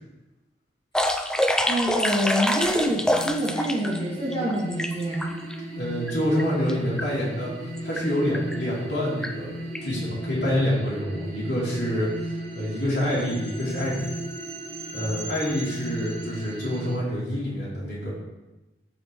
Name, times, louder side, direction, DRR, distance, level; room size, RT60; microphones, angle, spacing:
sound 1, 0.9-4.0 4.3-5.5 6.1-6.2 6.4-6.7 7.0-7.1 7.8-8.0 8.3-8.6 9.2-9.3 9.7-9.8, left 1 dB, 5° left, 0.4 m, -26 dB
voice 1, 1.6-5.3, equal, 25° left, -7 dB, 2.1 m, -26 dB
sound 2, 2.8-17.0, right 1 dB, 80° right, 1.7 m, -36 dB
voice 2, 5.8-9.5 9.8-14.2 14.9-18.1, equal, 75° left, -6 dB, 2.9 m, -27 dB
13.0 x 5.1 x 3.1 m, 1.1 s
head